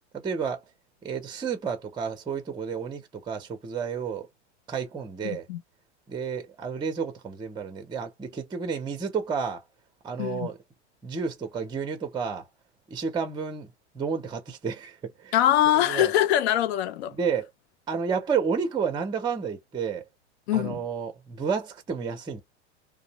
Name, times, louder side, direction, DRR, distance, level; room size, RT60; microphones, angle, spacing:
voice 1, 0.1-0.6 1.0-4.3 4.7-5.5 6.1-9.6 10.0-10.6 11.0-12.5 12.9-15.3 15.7-16.1 17.1-17.5 17.9-20.0 20.5-22.4, right 6 dB, 15° right, 0.7 m, -31 dB
voice 2, 5.2-5.6 10.2-10.5 15.3-17.1 20.5-20.8, left 12 dB, 65° left, 0.5 m, -23 dB
2.6 x 2.0 x 2.8 m
hypercardioid pair, 115°, 35 cm